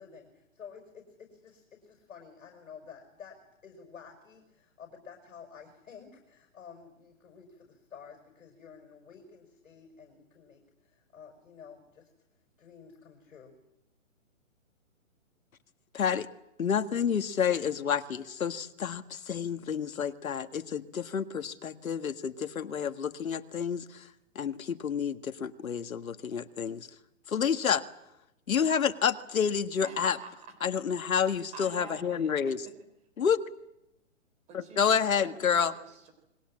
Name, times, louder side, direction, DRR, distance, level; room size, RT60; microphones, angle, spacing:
voice 1, 0.0-12.1 12.6-13.5, left 6 dB, 70° left, 3 dB, 6.4 m, -51 dB
voice 2, 15.9-16.3 16.6-24.1 24.4-26.9 27.3-27.8 28.5-30.2 30.6-32.6 33.2-33.4 34.5-35.7, left 7 dB, 85° left, 9 dB, 1.8 m, -29 dB
voice 3, 29.8-30.5 31.2-32.7 34.5-36.1, right 4 dB, 15° right, 6 dB, 4.0 m, -47 dB
29.0 x 21.5 x 7.6 m, 0.88 s
hypercardioid pair, 160°, 40 cm